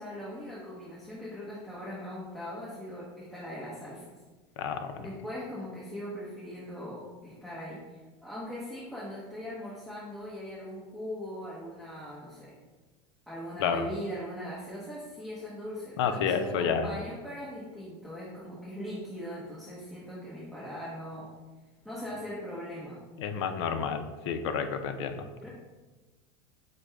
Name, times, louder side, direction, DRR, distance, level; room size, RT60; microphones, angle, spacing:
voice 1, 0.0-4.1 5.0-12.5 13.3-21.3 21.8-23.0 25.4-25.5, equal, ahead, -9 dB, 1.0 m, -40 dB
voice 2, 4.6-5.1 13.6-13.9 16.0-16.9 23.2-25.3, left 6 dB, 80° left, 8 dB, 0.5 m, -30 dB
6.3 x 2.2 x 3.4 m, 1.2 s
supercardioid pair, 130°, 14 cm